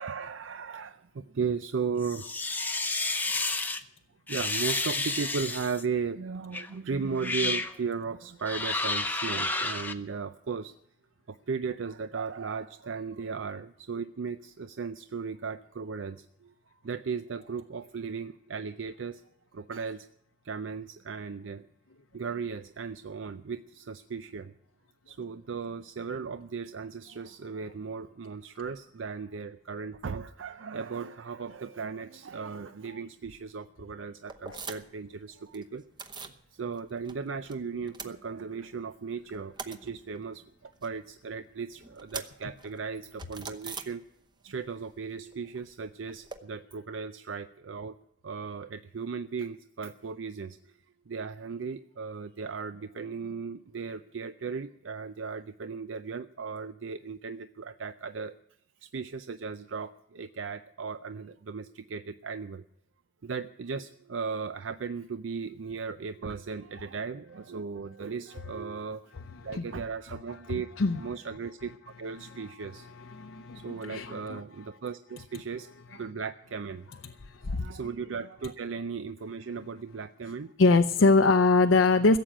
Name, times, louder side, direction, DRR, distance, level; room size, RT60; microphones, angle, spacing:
voice 1, 0.0-2.3 4.3-10.7 11.3-16.5 16.8-19.2 19.5-20.1 20.4-21.7 22.1-24.5 25.1-35.8 36.5-44.0 44.4-48.0 48.2-50.8 51.1-58.3 58.8-62.6 63.2-69.0 69.4-70.7 71.0-72.9 73.5-76.9 77.4-80.5, right 5 dB, 85° right, 11 dB, 0.5 m, -36 dB
sound 1, 2.0-3.8 4.3-5.8 6.5-6.7 7.1-7.7 8.4-9.9, left 3 dB, 10° left, 0.7 m, -31 dB
sound 2, 34.3-35.1 35.3-36.4 36.8-37.5 37.8-38.8 39.1-44.5 44.8-46.4, right 4 dB, 25° right, 0.9 m, -44 dB
voice 2, 72.6-74.4 77.2-77.7 80.6-82.2, left 3 dB, 80° left, 7 dB, 0.6 m, -23 dB
16.0 x 7.6 x 10.0 m, 0.69 s
head